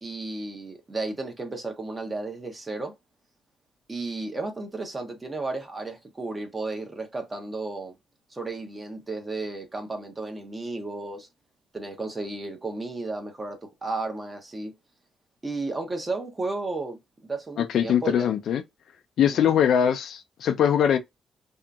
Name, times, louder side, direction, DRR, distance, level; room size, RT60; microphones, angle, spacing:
voice 1, 0.0-2.9 3.9-8.0 8.3-11.3 11.7-14.7 15.4-17.0 17.3-18.4 19.3-19.6, right 3 dB, 25° right, 0.9 m, -33 dB
voice 2, 17.6-18.6 19.2-21.0, left 9 dB, 70° left, 0.4 m, -22 dB
2.7 x 2.5 x 2.3 m
cardioid pair, 90°, 0 cm